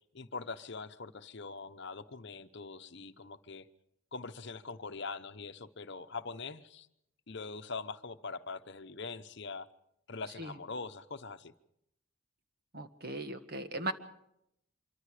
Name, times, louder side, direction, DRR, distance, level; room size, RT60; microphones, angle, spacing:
voice 1, 0.1-3.7 4.1-6.9 7.3-9.7 10.1-11.5, left 4 dB, 55° left, 0.9 m, -43 dB
voice 2, 12.7-13.9, right 2 dB, 45° right, 1.6 m, -38 dB
26.0 x 24.0 x 5.0 m
head